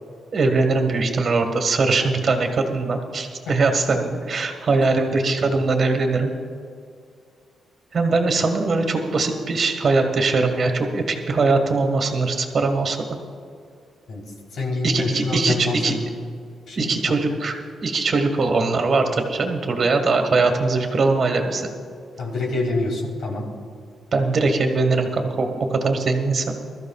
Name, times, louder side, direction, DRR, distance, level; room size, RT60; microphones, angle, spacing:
voice 1, 0.3-6.3 7.9-13.0 14.8-15.9 16.8-17.5 17.8-21.7 24.1-26.6, right 3 dB, 45° right, 5 dB, 1.7 m, -21 dB
voice 2, 14.5-16.0 16.7-17.0 22.2-23.4, left 2 dB, 70° left, -1 dB, 3.7 m, -25 dB
23.0 x 13.5 x 2.4 m, 2.2 s
cardioid pair, 135°, 0 cm